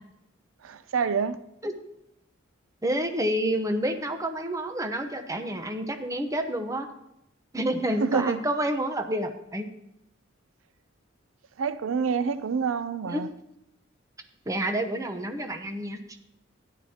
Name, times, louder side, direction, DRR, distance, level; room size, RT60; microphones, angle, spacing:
voice 1, 0.6-1.4 8.0-8.4 11.6-13.3, right 5 dB, 80° right, 0.5 m, -27 dB
voice 2, 2.8-6.9 7.5-9.7 13.0-13.3 14.5-16.0, right 1 dB, 15° right, 0.8 m, -29 dB
14.0 x 10.5 x 2.8 m
head